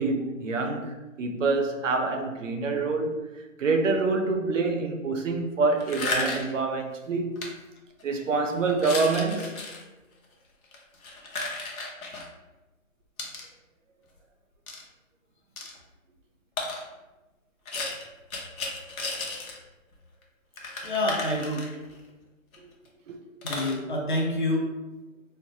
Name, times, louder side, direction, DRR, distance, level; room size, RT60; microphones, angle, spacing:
voice 1, 0.0-3.2 3.6-7.4 8.0-9.5 23.1-23.2, right 3 dB, 65° right, 0.6 m, -26 dB
sound 1, 5.8-6.6 7.3-7.5 8.0-8.2 8.7-9.8 10.6-12.3 13.2-13.5 14.7-14.8 15.6-15.7 16.6-16.8 17.6-19.6 19.9-20.0 20.2-20.3 20.6-22.0 22.5-22.6 22.8-22.9 23.4-23.8, left 2 dB, 85° left, 0.8 m, -34 dB
voice 2, 20.8-21.7 23.4-24.7, left 1 dB, 40° left, 0.5 m, -27 dB
3.2 x 2.1 x 2.7 m
hypercardioid pair, 160°, 41 cm